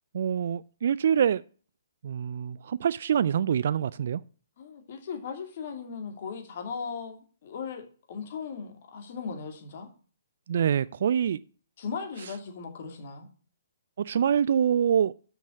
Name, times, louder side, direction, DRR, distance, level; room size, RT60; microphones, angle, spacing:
voice 1, 0.1-1.4 2.0-4.2 10.5-11.4 14.0-15.1, right 8 dB, 60° right, 0.3 m, -25 dB
voice 2, 4.6-9.9 11.8-13.3, left 5 dB, 50° left, 2.4 m, -38 dB
6.6 x 6.2 x 6.1 m
hypercardioid pair, 140°, 0 cm